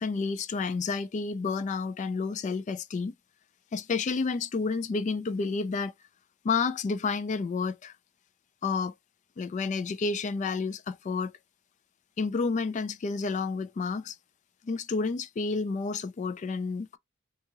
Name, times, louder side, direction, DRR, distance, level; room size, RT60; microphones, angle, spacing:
voice 1, 0.0-3.1 3.7-5.9 6.4-7.9 8.6-8.9 9.4-11.3 12.2-14.2 14.6-17.0, left 4 dB, 35° left, 0.3 m, -30 dB
2.7 x 2.3 x 2.8 m
head